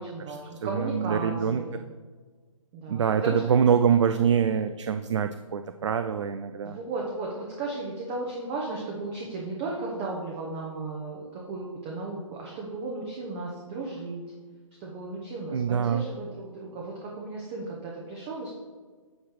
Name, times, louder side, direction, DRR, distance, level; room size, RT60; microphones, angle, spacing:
voice 1, 0.0-1.8 2.7-3.5 6.6-14.2 14.8-18.5, right 3 dB, 20° right, -2 dB, 0.9 m, -35 dB
voice 2, 0.7-1.6 2.9-6.8 15.5-16.0, right 7 dB, 55° right, 9 dB, 0.4 m, -24 dB
9.4 x 3.3 x 5.9 m, 1.5 s
figure-of-eight pair, 150°, 18 cm